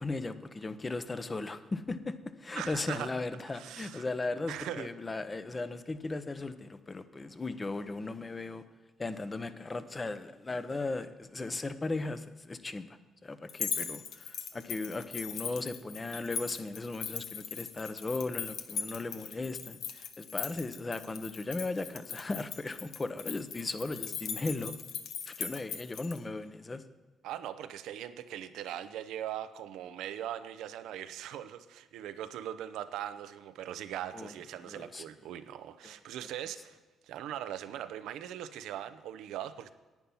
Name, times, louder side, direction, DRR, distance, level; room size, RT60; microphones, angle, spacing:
voice 1, 0.0-8.6 9.0-12.9 13.2-24.7 25.3-26.8 34.1-34.3 34.6-35.0 35.8-35.9, left 3 dB, 25° left, 11 dB, 0.8 m, -37 dB
voice 2, 2.5-3.1 3.5-4.1 4.5-4.9 25.5-25.6 27.2-36.8 37.0-39.7, right 11 dB, 85° right, 12 dB, 0.7 m, -40 dB
sound 1, 13.5-26.2, left 7 dB, 75° left, 0.9 m, -39 dB
10.5 x 9.4 x 5.6 m, 1.3 s
cardioid pair, 90°, 0 cm